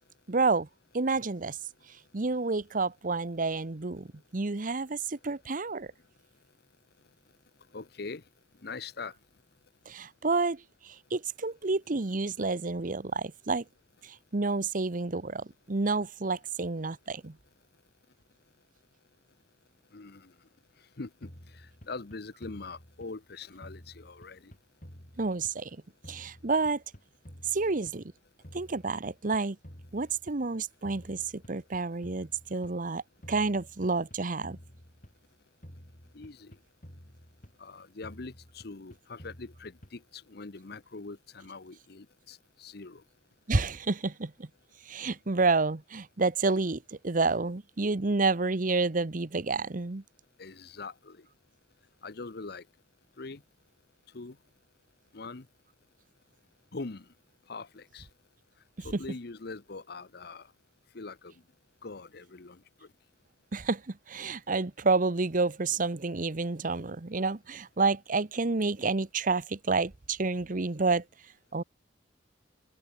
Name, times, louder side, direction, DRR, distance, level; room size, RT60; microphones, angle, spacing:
voice 1, 0.3-0.7 0.9-1.6 2.1-4.1 4.3-5.9 9.9-13.6 14.0-17.3 25.2-25.7 26.1-26.8 27.5-28.0 28.5-29.6 29.9-33.0 33.3-34.6 43.5-44.5 44.9-50.0 58.8-59.0 63.5-71.0 71.5-71.6, right 3 dB, 50° right, 1.0 m, -29 dB
voice 2, 7.7-8.2 8.6-9.1 19.9-20.3 21.0-24.5 36.1-36.6 37.6-43.0 50.4-51.3 52.0-52.7 53.2-53.4 54.1-54.4 55.1-55.5 56.7-57.1 57.5-58.1 58.8-60.5 60.9-61.4 61.8-62.9, left 3 dB, 65° left, 1.0 m, -43 dB
sound 1, 21.2-23.3 23.6-25.8 26.0-28.2 28.4-30.5 30.8-32.8 33.2-35.3 35.6-37.7 38.0-40.2, equal, 45° left, 7.1 m, -51 dB
open air
head